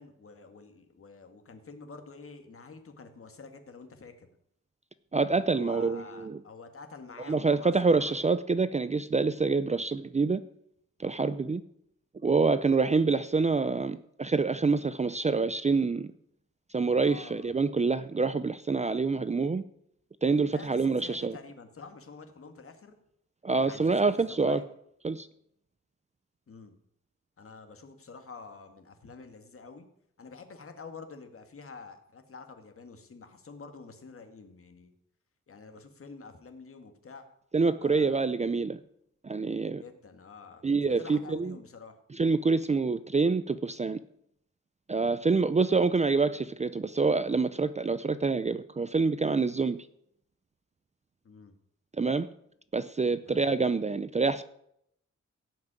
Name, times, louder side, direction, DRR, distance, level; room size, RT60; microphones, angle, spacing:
voice 1, 0.0-4.3 5.4-8.2 17.0-17.6 20.3-23.0 23.6-24.7 26.5-26.7 27.4-29.9 30.2-34.9 35.5-37.3 37.6-38.2 39.8-42.0 51.2-51.5 53.3-53.5, left 4 dB, 50° left, 6 dB, 2.0 m, -48 dB
voice 2, 5.1-6.4 7.3-10.4 11.0-11.6 12.2-16.1 16.7-19.6 20.2-21.3 23.4-24.6 25.0-25.3 37.5-38.8 39.2-39.8 40.6-41.5 42.1-44.0 44.9-49.8 52.0-52.3 52.7-54.4, right 4 dB, 25° right, 13 dB, 0.5 m, -26 dB
17.0 x 6.0 x 8.9 m, 0.72 s
wide cardioid pair, 145°, 29 cm